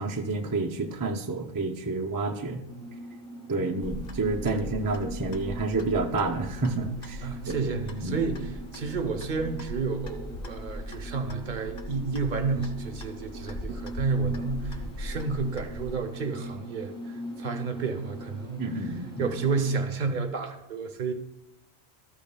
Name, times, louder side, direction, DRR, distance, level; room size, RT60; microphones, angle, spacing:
voice 1, 0.0-2.6 3.5-7.7 8.0-8.2 18.6-19.3, right 3 dB, 30° right, 3 dB, 0.4 m, -29 dB
sound 1, 2.6-19.9, equal, 5° left, 1.3 m, -42 dB
Clock, 3.8-16.0, left 1 dB, 50° left, 0.6 m, -39 dB
voice 2, 7.2-18.9 19.2-21.1, right 4 dB, 50° right, 6 dB, 0.8 m, -31 dB
12.5 x 8.6 x 2.2 m, 0.89 s
omnidirectional pair, 1.1 m